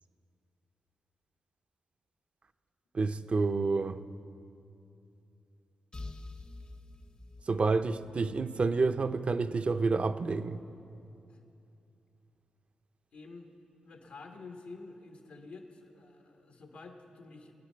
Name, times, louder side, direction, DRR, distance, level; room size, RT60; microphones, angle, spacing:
voice 1, 2.9-4.0 7.5-10.6, right 4 dB, 45° right, 11 dB, 0.6 m, -29 dB
sound 1, 5.9-9.6, left 2 dB, 35° left, 0.7 m, -48 dB
voice 2, 13.1-13.5 13.8-17.5, left 3 dB, 80° left, 2 dB, 1.3 m, -49 dB
22.0 x 9.6 x 4.5 m, 2.7 s
cardioid pair, 65°, 3 cm